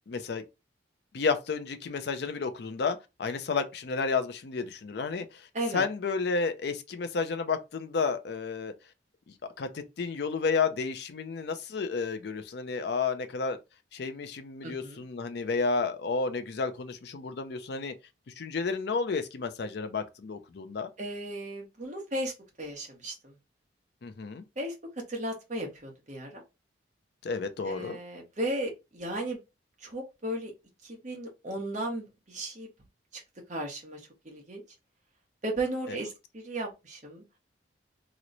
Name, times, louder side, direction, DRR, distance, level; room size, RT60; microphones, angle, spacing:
voice 1, 0.1-0.4 1.1-5.5 5.7-8.7 9.6-13.6 13.9-17.9 18.4-20.9 24.0-24.4 27.2-28.0 35.9-36.0, left 4 dB, 55° left, 0.4 m, -31 dB
voice 2, 14.6-15.0 21.0-22.3 22.6-23.3 24.6-24.7 25.1-26.4 27.6-29.4 29.8-30.5 30.8-32.7 33.1-33.2 33.5-34.0 34.2-34.6 35.4-37.2, right 1 dB, 40° right, 0.9 m, -35 dB
3.0 x 2.1 x 3.8 m
head